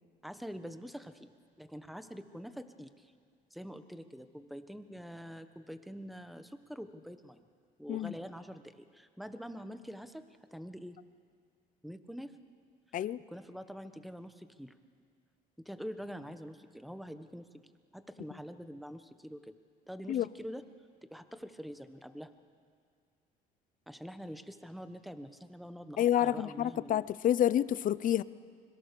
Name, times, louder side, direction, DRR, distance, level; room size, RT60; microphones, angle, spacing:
voice 1, 0.2-1.3 1.6-3.1 3.5-7.4 7.8-10.2 10.5-11.0 11.8-12.3 13.3-14.7 15.6-17.6 17.9-19.5 19.9-20.6 21.1-22.3 23.9-27.0, equal, ahead, 10 dB, 1.2 m, -45 dB
voice 2, 26.0-28.2, left 11 dB, 55° left, 18 dB, 0.6 m, -28 dB
25.5 x 22.5 x 6.9 m, 2.1 s
cardioid pair, 110°, 17 cm